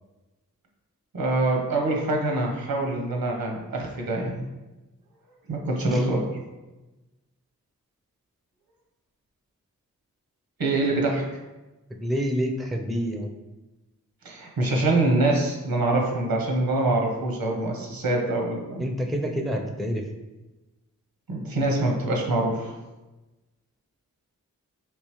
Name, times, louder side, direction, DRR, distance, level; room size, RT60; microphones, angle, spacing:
voice 1, 1.1-4.4 5.5-6.3 10.6-11.2 14.2-18.8 21.3-22.8, right 2 dB, 80° right, 1 dB, 0.8 m, -25 dB
voice 2, 12.0-13.3 18.8-20.0, equal, ahead, 3 dB, 0.4 m, -27 dB
3.6 x 2.7 x 3.0 m, 1.1 s
cardioid pair, 40°, 35 cm